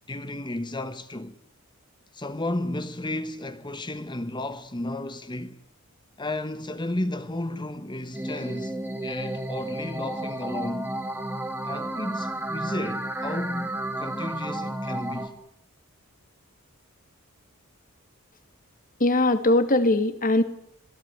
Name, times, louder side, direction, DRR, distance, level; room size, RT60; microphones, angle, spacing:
voice 1, 0.1-1.4 2.1-5.6 6.2-10.9 11.6-15.3, left 1 dB, 20° left, 1.2 m, -33 dB
sound 1, 8.1-15.3, right 1 dB, 10° right, 2.8 m, -32 dB
voice 2, 19.0-20.4, left 2 dB, 40° left, 2.2 m, -20 dB
25.5 x 18.0 x 9.9 m
head